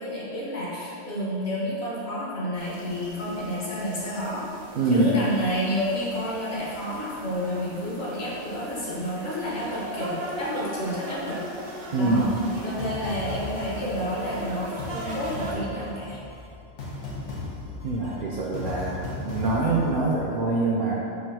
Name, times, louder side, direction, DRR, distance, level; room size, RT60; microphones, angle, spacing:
voice 1, 0.0-4.4 4.9-11.4 12.0-12.3 12.6-16.2, equal, 55° left, -7 dB, 1.3 m, -30 dB
sound 1, 2.6-15.5, right 1 dB, 75° right, 1.1 m, -39 dB
voice 2, 4.8-5.2 11.9-12.4 17.8-20.9, right 2 dB, 60° right, -5 dB, 0.6 m, -24 dB
sound 2, 12.1-20.3, left 2 dB, 80° left, 1.1 m, -37 dB
4.5 x 2.5 x 4.6 m, 2.6 s
omnidirectional pair, 1.2 m